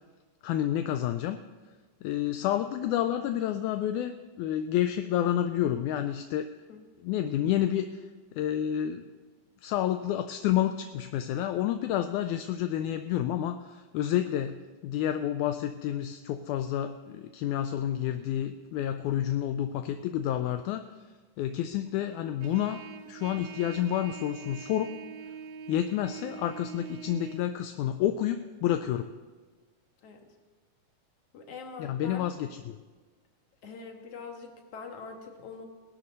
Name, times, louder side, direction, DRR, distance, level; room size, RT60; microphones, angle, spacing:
voice 1, 0.4-1.4 2.0-6.6 7.0-9.1 9.6-20.9 21.4-25.0 25.7-29.1 31.8-32.8, left 11 dB, 80° left, 9 dB, 1.9 m, -29 dB
Trumpet, 22.4-27.4, right 6 dB, 80° right, 1.5 m, -44 dB
voice 2, 31.3-32.3 33.6-35.7, left 5 dB, 55° left, 3 dB, 2.3 m, -43 dB
18.0 x 12.0 x 4.1 m, 1.4 s
omnidirectional pair, 3.7 m